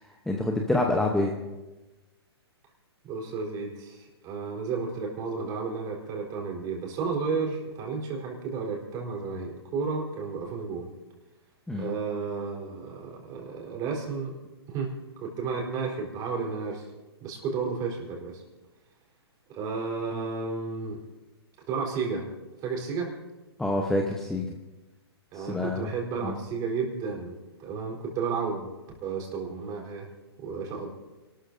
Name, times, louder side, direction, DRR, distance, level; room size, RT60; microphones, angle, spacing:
voice 1, 0.3-1.3 11.7-11.9 23.6-24.5 25.3-25.9 26.2-26.4, left 2 dB, 5° left, 1 dB, 0.8 m, -27 dB
voice 2, 3.0-10.9 11.8-14.3 14.7-14.9 15.2-16.9 17.2-18.4 19.5-21.0 21.7-22.2 22.6-23.1 25.3-28.7 29.0-30.1 30.4-30.9, right 5 dB, 30° right, 0 dB, 4.0 m, -32 dB
29.0 x 13.0 x 2.7 m, 1.1 s
hypercardioid pair, 135°, 14 cm